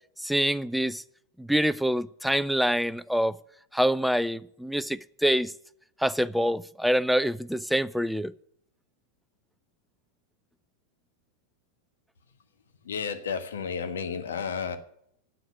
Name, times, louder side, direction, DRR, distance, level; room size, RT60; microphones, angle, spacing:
voice 1, 0.2-1.0 1.4-3.4 3.7-5.5 6.0-8.3, equal, ahead, 0.4 m, -26 dB
voice 2, 12.8-14.8, left 6 dB, 65° left, 1.3 m, -32 dB
9.4 x 7.9 x 9.3 m
figure-of-eight pair, 90°, 0 cm